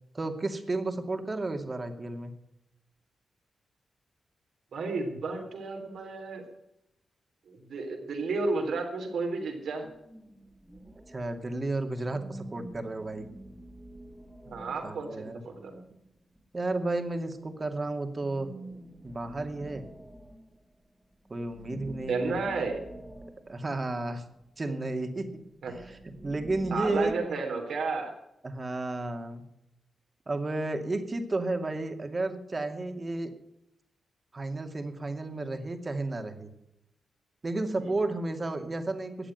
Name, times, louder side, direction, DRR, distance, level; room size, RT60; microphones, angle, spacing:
voice 1, 0.1-2.3 11.1-13.3 14.8-15.4 16.5-18.5 19.0-19.8 21.3-22.4 23.5-24.2 24.6-25.4 25.7-27.1 28.4-29.4 30.3-33.3 34.3-36.5 37.4-39.3, right 2 dB, 40° right, 6 dB, 2.4 m, -32 dB
voice 2, 4.7-6.4 7.5-9.9 14.5-15.7 22.1-22.8 25.6-25.7 26.7-28.2 37.8-37.9, right 3 dB, 80° right, 3 dB, 3.8 m, -32 dB
sound 1, 9.8-11.6 12.0-16.4 18.2-20.9 21.2-24.4 25.4-27.1, right 1 dB, 10° right, 2.0 m, -47 dB
14.0 x 8.7 x 9.2 m, 0.85 s
cardioid pair, 60°, 0 cm